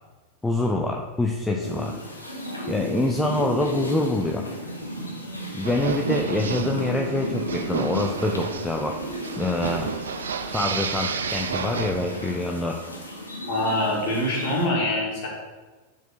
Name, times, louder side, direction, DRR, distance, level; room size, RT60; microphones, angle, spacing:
voice 1, 0.4-1.9 2.7-4.5 5.5-9.0 9.4-9.9 10.5-12.8, left 2 dB, 10° left, 1 dB, 0.5 m, -25 dB
sound 1, 1.6-14.7, equal, 85° left, 1.1 m, -34 dB
sound 2, 5.6-12.5, right 6 dB, 65° right, 0.4 m, -31 dB
voice 2, 13.5-15.3, left 1 dB, 45° left, -2 dB, 2.2 m, -24 dB
8.1 x 4.5 x 4.0 m, 1.3 s
figure-of-eight pair, 90°, 0 cm